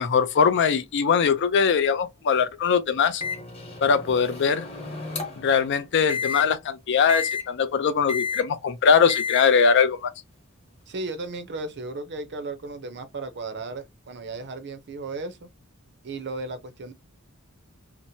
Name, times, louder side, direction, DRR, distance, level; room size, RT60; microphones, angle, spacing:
voice 1, 0.0-3.2 3.8-4.7 5.4-10.1, left 6 dB, 55° left, 0.4 m, -21 dB
Microwave oven, 3.2-5.5 6.1-6.4 7.1-7.4 8.1-8.4 9.1-9.4, left 5 dB, 30° left, 1.0 m, -31 dB
voice 2, 10.9-15.5 16.0-16.9, right 3 dB, 50° right, 0.6 m, -35 dB
2.9 x 2.1 x 2.7 m
head